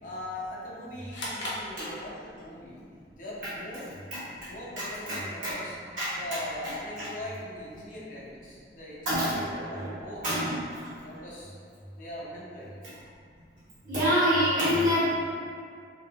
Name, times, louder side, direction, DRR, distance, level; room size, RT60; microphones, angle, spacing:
voice 1, 0.0-2.8 3.2-4.0 4.4-5.7 6.2-10.2 11.0-11.5 12.0-12.7, left 1 dB, 45° left, -7 dB, 0.8 m, -41 dB
sound 1, 1.1-2.5, left 1 dB, 80° left, 0.8 m, -37 dB
voice 2, 4.8-5.5 6.0-6.4 7.0-7.1 9.0-9.9 10.2-10.8 13.8-15.1, equal, 45° right, -13 dB, 1.5 m, -27 dB
3.2 x 3.0 x 2.8 m, 2.3 s
head